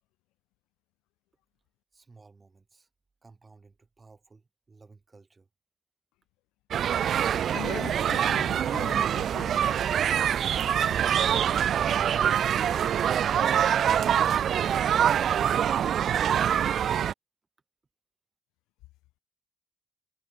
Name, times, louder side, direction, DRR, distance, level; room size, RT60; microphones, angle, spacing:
voice 1, 1.9-2.9 3.2-5.5 12.0-12.7 13.2-14.2 14.6-16.0, right 4 dB, 30° right, 7.9 m, -55 dB
sound 1, 6.7-17.1, right 9 dB, 60° right, 0.6 m, -25 dB
voice 2, 7.5-9.6, left 19 dB, 80° left, 3.9 m, -41 dB
hypercardioid pair, 55°, 0 cm